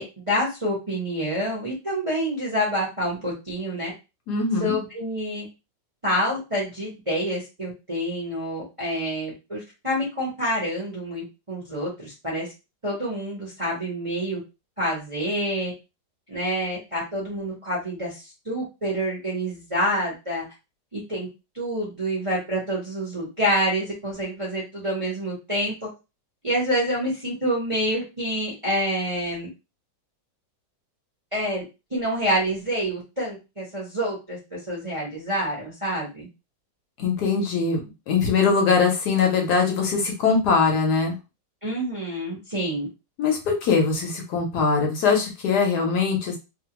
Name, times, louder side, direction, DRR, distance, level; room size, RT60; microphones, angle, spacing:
voice 1, 0.0-3.9 4.6-5.5 6.0-12.5 12.8-14.4 14.8-15.7 16.3-20.4 20.9-21.3 21.5-25.9 26.4-29.5 31.3-31.6 31.9-36.3 41.6-42.9, equal, 25° right, -5 dB, 0.7 m, -27 dB
voice 2, 4.3-4.8 37.0-41.2 43.2-46.4, left 5 dB, 65° left, 1 dB, 1.1 m, -22 dB
2.9 x 2.3 x 2.9 m, 0.27 s
omnidirectional pair, 2.0 m